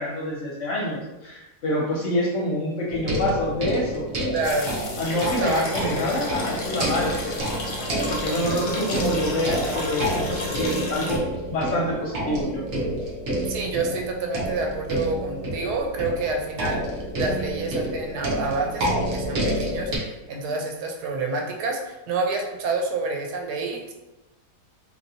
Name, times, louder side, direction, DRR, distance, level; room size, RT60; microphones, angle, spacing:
voice 1, 0.0-4.0 5.0-7.4 8.1-11.2 11.5-12.6, left 1 dB, 65° left, -4 dB, 0.8 m, -27 dB
sound 1, 2.9-20.0, right 1 dB, 55° right, 0.7 m, -29 dB
voice 2, 4.3-4.7 5.2-6.0 13.5-23.9, right 3 dB, 80° right, 2 dB, 1.1 m, -28 dB
sound 2, 4.4-11.2, left 2 dB, 85° left, 0.4 m, -32 dB
3.0 x 2.7 x 2.7 m, 0.99 s
omnidirectional pair, 1.7 m